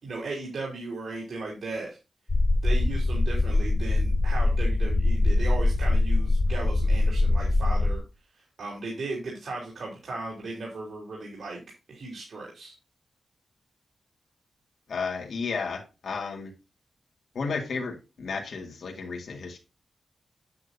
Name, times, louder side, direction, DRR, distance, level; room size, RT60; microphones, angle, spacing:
voice 1, 0.0-2.0 2.6-8.0 8.6-11.6 11.9-12.7, right 3 dB, 70° right, 3.6 m, -36 dB
sound 1, 2.3-8.0, left 2 dB, 35° left, 1.9 m, -23 dB
voice 2, 14.9-16.5 17.3-19.6, left 4 dB, 75° left, 2.1 m, -33 dB
9.3 x 8.5 x 2.7 m
wide cardioid pair, 135°, 0 cm